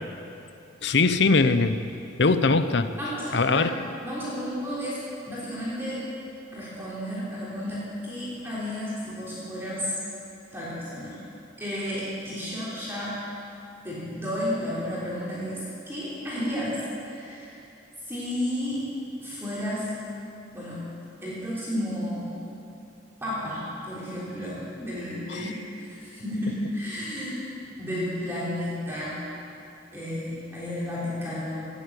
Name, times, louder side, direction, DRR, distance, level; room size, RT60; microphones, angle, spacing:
voice 1, 0.8-1.8 2.2-2.9 3.3-3.7 25.3-25.5, left 3 dB, 70° left, 11 dB, 0.7 m, -21 dB
voice 2, 3.0-3.7 4.0-5.0 5.3-6.0 6.5-10.0 10.5-11.2 11.6-13.2 13.8-17.6 18.1-18.8 19.2-19.9 20.5-20.9 21.2-22.3 23.2-27.4 27.8-29.2 29.9-31.7, equal, 10° right, -9 dB, 3.7 m, -32 dB
17.0 x 8.3 x 8.2 m, 2.7 s
head